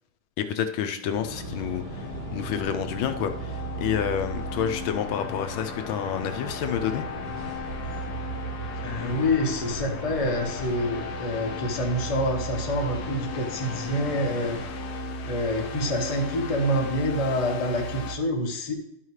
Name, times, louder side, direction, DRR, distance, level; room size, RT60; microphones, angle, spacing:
voice 1, 0.4-7.1, left 8 dB, 80° left, 1.4 m, -29 dB
sound 1, 1.1-18.2, left 1 dB, 60° left, 1.2 m, -36 dB
sound 2, 1.1-14.6, right 1 dB, 45° right, 2.1 m, -40 dB
voice 2, 8.8-14.6 14.9-15.0 15.2-18.7, left 1 dB, 25° left, 0.8 m, -27 dB
12.0 x 5.6 x 3.2 m
omnidirectional pair, 2.3 m